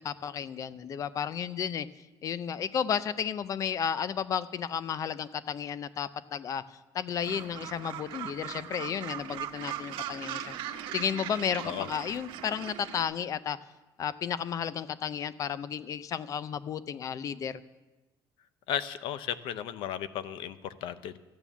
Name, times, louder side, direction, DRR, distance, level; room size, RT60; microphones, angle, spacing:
voice 1, 0.0-1.9 2.2-6.6 6.9-10.6 10.9-13.6 14.0-17.6, left 8 dB, 40° left, 16 dB, 0.5 m, -33 dB
Gull seagull, 7.2-13.0, right 10 dB, 85° right, 1.0 m, -39 dB
voice 2, 18.7-21.2, left 10 dB, 85° left, 14 dB, 0.7 m, -35 dB
14.0 x 9.2 x 7.1 m, 1.1 s
cardioid pair, 150°, 8 cm